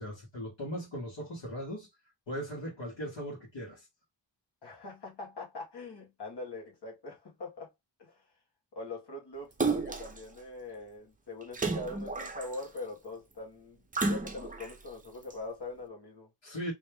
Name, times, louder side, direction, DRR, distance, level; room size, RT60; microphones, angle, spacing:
voice 1, 0.0-1.9 2.3-3.9 16.4-16.7, equal, 80° left, 1.8 m, -38 dB
voice 2, 4.6-7.7 8.0-8.2 8.7-13.8 14.1-16.3, left 2 dB, 65° left, 1.7 m, -42 dB
Splash splatter, 9.6-10.2 11.5-12.8 13.9-14.7 15.3-15.4, right 3 dB, 20° right, 0.5 m, -32 dB
3.3 x 3.1 x 3.4 m
wide cardioid pair, 130°, 44 cm